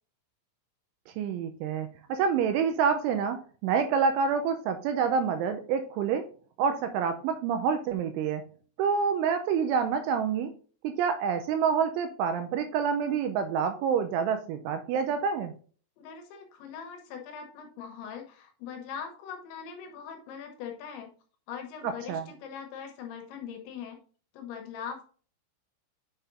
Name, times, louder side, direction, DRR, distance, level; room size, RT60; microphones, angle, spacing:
voice 1, 1.1-6.3 6.6-8.4 8.8-10.5 10.8-15.5 22.1-22.2, right 6 dB, 85° right, 7 dB, 2.8 m, -27 dB
voice 2, 16.0-21.1 21.5-24.0 24.3-25.1, left 7 dB, 75° left, 3 dB, 3.0 m, -41 dB
9.0 x 5.7 x 2.6 m, 0.42 s
omnidirectional pair, 5.9 m